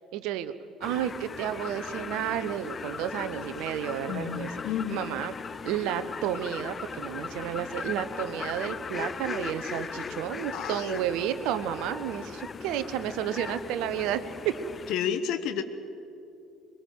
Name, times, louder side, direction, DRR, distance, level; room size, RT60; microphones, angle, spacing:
voice 1, 0.1-0.5 0.8-4.6 4.9-5.3 5.6-14.5, right 10 dB, 60° right, 12 dB, 1.0 m, -31 dB
sound 1, 0.8-14.9, left 5 dB, 30° left, 0.4 m, -38 dB
voice 2, 4.1-5.0 10.5-11.0 14.9-15.6, left 8 dB, 55° left, 9 dB, 1.3 m, -31 dB
22.0 x 22.0 x 7.6 m, 2.7 s
figure-of-eight pair, 55°, 0 cm